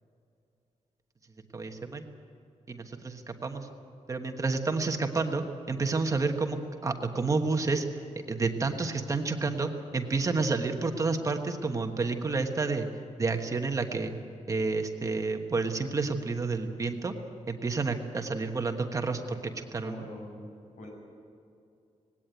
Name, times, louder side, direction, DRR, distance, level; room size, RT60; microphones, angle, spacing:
voice 1, 1.5-2.1 2.7-3.7 4.1-7.9 8.3-12.9 13.2-14.1 14.5-17.1 17.5-20.0, right 3 dB, 25° right, 5 dB, 1.2 m, -30 dB
voice 2, 19.8-20.9, left 2 dB, 75° left, 0 dB, 6.5 m, -44 dB
19.5 x 17.5 x 9.2 m, 2.5 s
wide cardioid pair, 180°, 13 cm